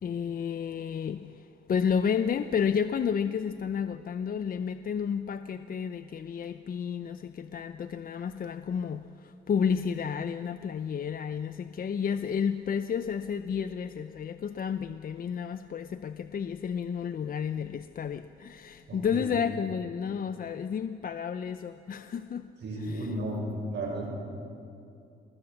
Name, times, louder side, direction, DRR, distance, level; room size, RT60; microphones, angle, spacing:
voice 1, 0.0-22.5 22.8-23.1, left 7 dB, 45° left, 11 dB, 0.7 m, -31 dB
voice 2, 18.9-19.3 22.6-24.1, right 1 dB, 60° right, 0 dB, 7.2 m, -34 dB
28.0 x 21.0 x 7.3 m, 2.6 s
cardioid pair, 90°, 20 cm